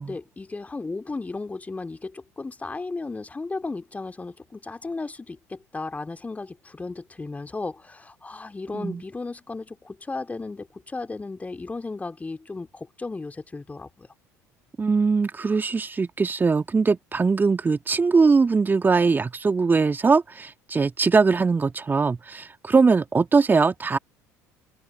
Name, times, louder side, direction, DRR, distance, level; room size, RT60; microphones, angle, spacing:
voice 1, 0.0-14.1, left 3 dB, 15° left, 2.7 m, -35 dB
voice 2, 14.8-24.0, right 4 dB, 20° right, 2.2 m, -21 dB
open air
figure-of-eight pair, 60°, 9 cm